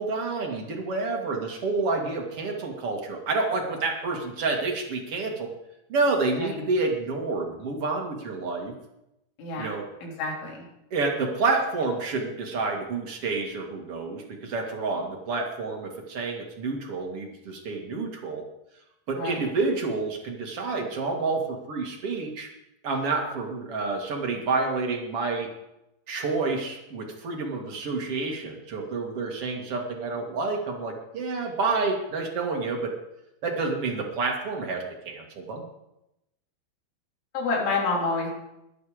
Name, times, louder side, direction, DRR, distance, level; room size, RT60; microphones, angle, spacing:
voice 1, 0.0-5.5 5.9-8.7 9.6-9.8 10.9-18.4 19.1-22.5 22.8-25.5 26.1-32.9 33.4-35.7, right 3 dB, 45° right, 1 dB, 2.0 m, -29 dB
voice 2, 9.4-10.7 19.2-19.4 37.3-38.3, left 3 dB, 80° left, -3 dB, 6.1 m, -29 dB
21.5 x 10.5 x 5.0 m, 0.86 s
omnidirectional pair, 5.4 m